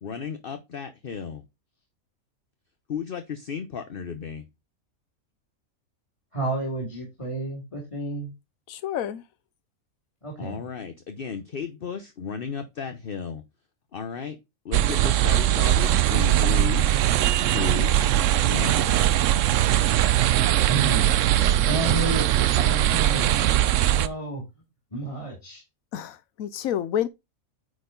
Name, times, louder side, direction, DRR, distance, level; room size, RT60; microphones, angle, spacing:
voice 1, 0.0-1.4 2.9-4.4 10.4-13.4 13.9-14.4 14.6-16.9 17.4-18.0 18.4-19.0, left 6 dB, 45° left, 0.9 m, -34 dB
voice 2, 6.3-8.3 10.2-10.6 20.7-23.5 24.0-24.4 24.9-25.6, right 2 dB, 20° left, 2.5 m, -31 dB
voice 3, 8.7-9.2 25.9-27.1, left 10 dB, 85° left, 1.1 m, -29 dB
sound 1, 14.7-24.1, right 12 dB, 70° right, 0.9 m, -21 dB
9.4 x 4.4 x 3.8 m
omnidirectional pair, 1.4 m